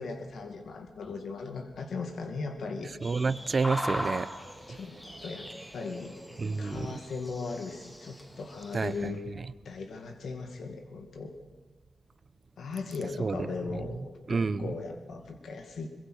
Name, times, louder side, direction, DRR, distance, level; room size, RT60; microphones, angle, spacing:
voice 1, 0.0-2.9 4.7-6.1 6.6-9.2 9.6-11.4 12.6-15.9, left 4 dB, 80° left, 6 dB, 2.3 m, -38 dB
sound 1, 3.0-9.1, equal, 10° left, 3.2 m, -40 dB
voice 2, 3.0-4.3 4.7-4.8 6.4-6.9 8.7-9.1 13.2-13.5 14.3-14.7, right 4 dB, 40° right, 15 dB, 0.9 m, -29 dB
23.5 x 21.5 x 6.5 m, 1.2 s
wide cardioid pair, 135°, 0 cm